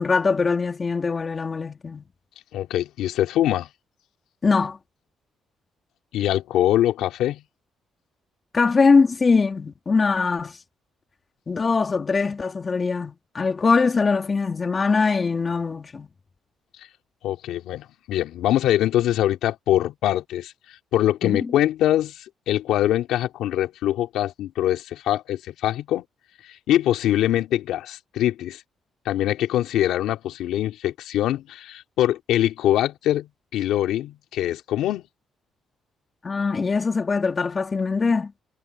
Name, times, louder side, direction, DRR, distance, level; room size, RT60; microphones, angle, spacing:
voice 1, 0.0-2.1 4.4-4.8 8.5-10.6 11.5-16.1 21.2-21.5 36.2-38.3, left 4 dB, 35° left, 3.8 m, -22 dB
voice 2, 2.5-3.7 6.1-7.4 17.2-20.5 20.9-26.0 26.7-28.6 29.0-35.0, left 12 dB, 85° left, 3.2 m, -23 dB
cardioid pair, 90°, 0 cm